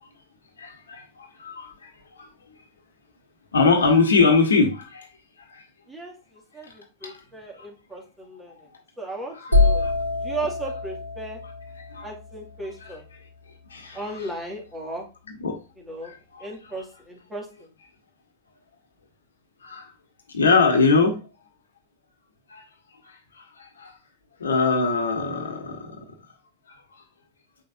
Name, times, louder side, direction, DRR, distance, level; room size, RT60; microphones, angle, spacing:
voice 1, 0.6-1.9 2.2-2.3 3.5-5.1 5.5-5.6 7.0-7.2 7.6-7.7 9.3-9.9 10.3-10.4 11.9-12.1 12.8-12.9 13.7-14.3 15.4-15.5 16.0-16.5 19.6-19.9 20.3-21.2 22.5-22.6 23.0-23.9 24.4-26.0 26.7-26.8, left 4 dB, 70° left, 1.4 m, -23 dB
voice 2, 5.9-8.5 9.0-11.4 12.0-13.0 13.9-15.1 15.8-16.1 16.4-17.7, right 2 dB, 15° right, 2.3 m, -36 dB
sound 1, 9.5-13.3, left 3 dB, 90° left, 1.3 m, -25 dB
7.6 x 5.4 x 2.7 m
figure-of-eight pair, 90°, 0 cm